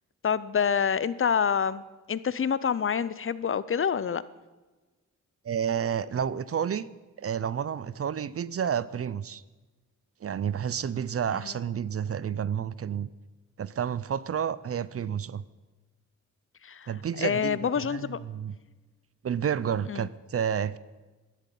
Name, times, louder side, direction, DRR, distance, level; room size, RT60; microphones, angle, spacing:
voice 1, 0.2-4.2 11.3-11.5 16.6-16.9 17.2-18.2 19.9-20.1, left 7 dB, 45° left, 17 dB, 0.5 m, -27 dB
voice 2, 5.4-6.9 7.2-9.4 10.2-13.1 13.6-15.4 16.9-17.6 17.9-18.5 19.2-20.8, right 8 dB, 50° right, 18 dB, 0.5 m, -30 dB
12.0 x 11.0 x 9.1 m, 1.2 s
wide cardioid pair, 155°, 31 cm